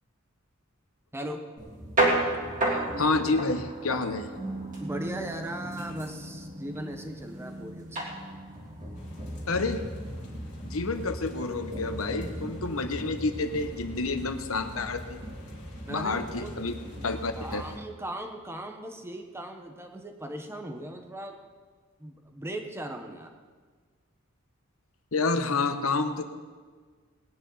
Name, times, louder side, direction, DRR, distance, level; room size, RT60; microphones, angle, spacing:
sound 1, 1.6-17.7, right 1 dB, 40° right, 3.2 m, -34 dB
voice 1, 2.7-4.3 9.5-9.8 10.6-15.2 15.9-16.7 17.0-17.6 25.1-26.2, left 3 dB, 80° left, 8 dB, 1.1 m, -29 dB
voice 2, 4.8-8.0 15.9-16.5 16.9-17.0 17.4-21.3 22.0-23.3, right 1 dB, 10° right, 4 dB, 1.2 m, -38 dB
sound 2, 8.9-17.8, left 1 dB, 40° left, 2.8 m, -48 dB
20.0 x 9.6 x 4.1 m, 1.5 s
head